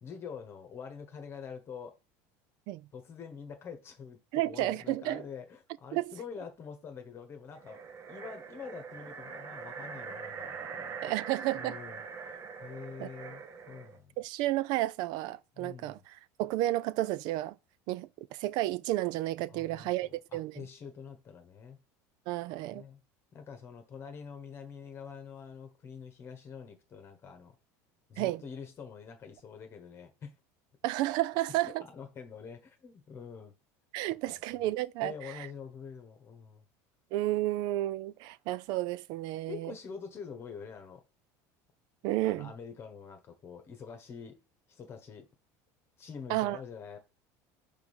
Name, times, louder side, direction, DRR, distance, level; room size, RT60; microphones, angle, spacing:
voice 1, 0.0-2.0 2.9-4.2 4.4-7.8 8.1-11.1 11.5-14.1 15.5-16.0 19.5-21.8 22.7-23.0 23.3-27.5 28.1-30.3 31.6-33.5 34.3-34.6 35.0-36.7 39.5-41.0 42.3-44.4 44.7-45.3 46.0-47.0, left 6 dB, 30° left, 1.2 m, -46 dB
voice 2, 4.3-5.2 5.9-6.1 11.0-11.8 13.0-13.1 14.2-17.6 17.9-20.6 22.3-22.8 28.2-28.4 30.8-31.8 33.9-35.5 37.1-39.7 42.0-42.5 46.3-46.6, right 16 dB, 60° right, 0.4 m, -32 dB
sound 1, 7.5-14.0, right 5 dB, 35° right, 0.9 m, -43 dB
4.9 x 3.6 x 5.6 m
cardioid pair, 140°, 8 cm